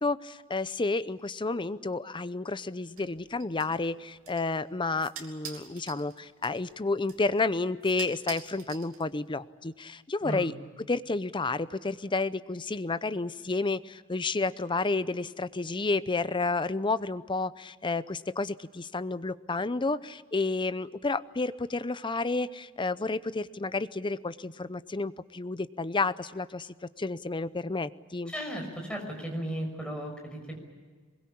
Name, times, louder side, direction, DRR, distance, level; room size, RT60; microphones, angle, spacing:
voice 1, 0.0-10.5 10.9-28.3, left 3 dB, 25° left, 14 dB, 0.7 m, -31 dB
sound 1, 3.0-9.4, right 7 dB, 75° right, 3.1 m, -48 dB
voice 2, 28.3-30.6, right 1 dB, 5° left, 1 dB, 6.0 m, -35 dB
23.5 x 21.5 x 8.6 m, 1.5 s
head